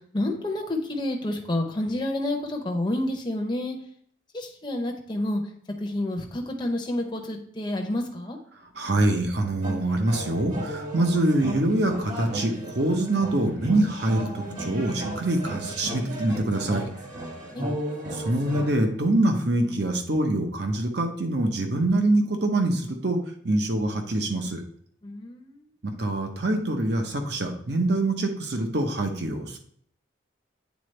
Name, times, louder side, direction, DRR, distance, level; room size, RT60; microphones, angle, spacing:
voice 1, 0.1-3.8 4.3-5.4 5.8-8.4 17.5-17.6 25.0-25.6, left 1 dB, 25° left, 2 dB, 0.7 m, -29 dB
voice 2, 8.8-16.8 18.1-23.2 23.4-24.6 25.8-29.6, right 1 dB, 60° right, 4 dB, 0.9 m, -25 dB
sound 1, 9.6-18.7, right 1 dB, 40° right, 1.3 m, -34 dB
8.3 x 3.9 x 3.2 m, 0.62 s
head